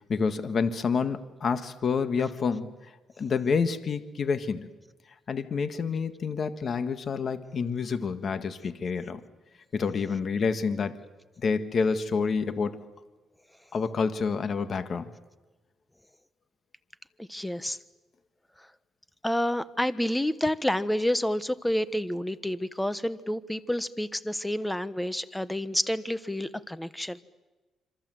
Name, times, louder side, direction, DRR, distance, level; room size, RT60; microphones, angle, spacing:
voice 1, 0.1-2.7 3.2-4.7 5.3-9.2 9.7-11.0 11.4-12.8 13.7-15.1, left 5 dB, 50° left, 9 dB, 1.7 m, -28 dB
voice 2, 17.3-17.8 19.2-27.2, left 1 dB, 5° left, 14 dB, 1.2 m, -29 dB
26.5 x 26.5 x 7.8 m, 1.2 s
cardioid pair, 90°, 0 cm